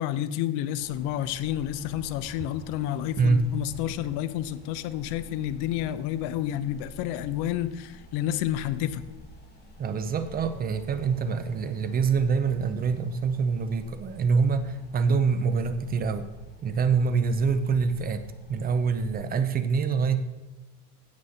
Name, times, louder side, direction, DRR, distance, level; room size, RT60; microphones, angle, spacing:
voice 1, 0.0-9.0, left 12 dB, 55° left, 13 dB, 0.7 m, -30 dB
sound 1, 0.8-19.1, equal, 20° left, 1.9 m, -48 dB
voice 2, 9.8-16.3 16.6-18.2 18.5-20.2, right 5 dB, 20° right, 10 dB, 0.5 m, -25 dB
16.0 x 6.2 x 4.3 m, 1.1 s
cardioid pair, 155°, 47 cm